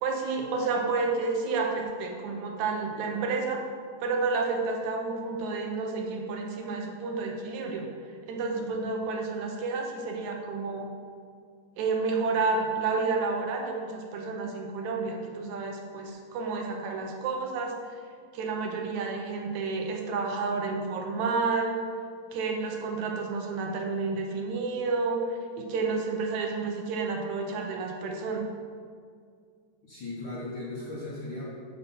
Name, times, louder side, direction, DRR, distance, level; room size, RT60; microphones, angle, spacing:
voice 1, 0.0-3.6 4.0-7.9 8.3-10.9 11.8-17.8 18.3-21.8 22.3-28.4, right 4 dB, 80° right, 1 dB, 2.1 m, -30 dB
voice 2, 8.5-8.8 29.8-31.5, left 2 dB, 60° left, -6 dB, 1.3 m, -38 dB
5.9 x 5.5 x 5.4 m, 2.1 s
omnidirectional pair, 3.3 m